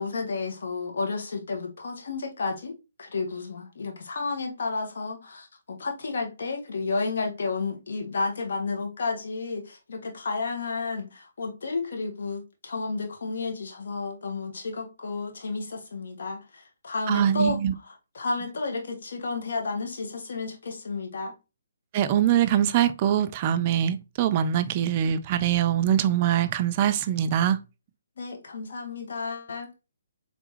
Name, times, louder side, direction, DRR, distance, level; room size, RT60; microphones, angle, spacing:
voice 1, 0.0-17.6 17.9-21.3 28.2-29.7, left 3 dB, 60° left, 1.5 m, -32 dB
voice 2, 17.1-17.7 21.9-27.6, right 10 dB, 30° right, 0.4 m, -23 dB
4.0 x 3.5 x 2.9 m
figure-of-eight pair, 140°, 0 cm